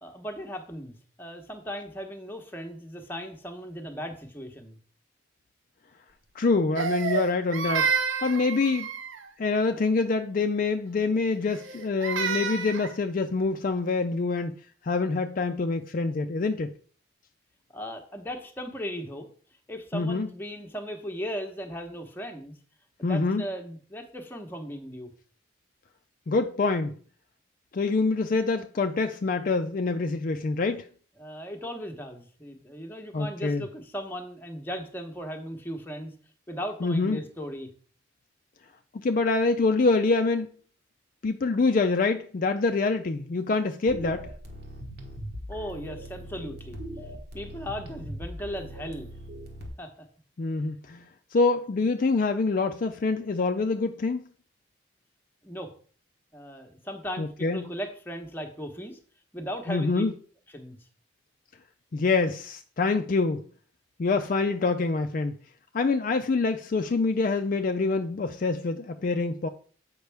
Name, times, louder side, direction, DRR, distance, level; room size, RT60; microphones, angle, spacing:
voice 1, 0.0-4.8 17.7-19.3 19.7-22.6 23.0-25.1 31.2-36.1 36.5-37.7 45.5-46.8 47.3-49.1 49.8-49.9 55.4-55.7 56.3-59.0 59.3-60.0 60.5-60.8, equal, 10° left, 0.9 m, -37 dB
voice 2, 6.4-7.9 8.2-8.9 9.4-14.5 14.8-16.7 19.9-20.3 23.0-23.4 26.3-26.9 27.7-30.9 33.1-33.6 36.8-37.2 39.0-40.5 41.2-44.3 50.4-54.2 57.2-57.6 59.7-60.1 61.9-63.4 64.0-65.4 65.7-69.5, left 3 dB, 45° left, 0.4 m, -25 dB
Crying sobbing, 6.8-9.3 11.5-12.9, right 6 dB, 90° right, 0.7 m, -29 dB
sound 1, 43.9-49.7, equal, 55° right, 1.2 m, -40 dB
7.9 x 5.3 x 3.4 m
head